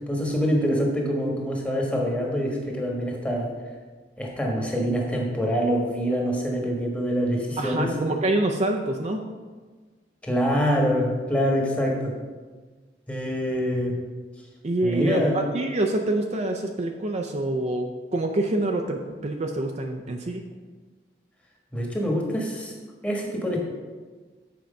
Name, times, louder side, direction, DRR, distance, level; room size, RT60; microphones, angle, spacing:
voice 1, 0.1-3.5 4.2-7.9 10.2-12.1 13.1-14.0 14.8-15.4 21.7-22.7 23.0-23.6, equal, 10° left, -1 dB, 1.3 m, -25 dB
voice 2, 7.6-9.2 14.6-20.4, right 2 dB, 40° right, 3 dB, 0.5 m, -26 dB
7.6 x 4.6 x 5.2 m, 1.4 s
head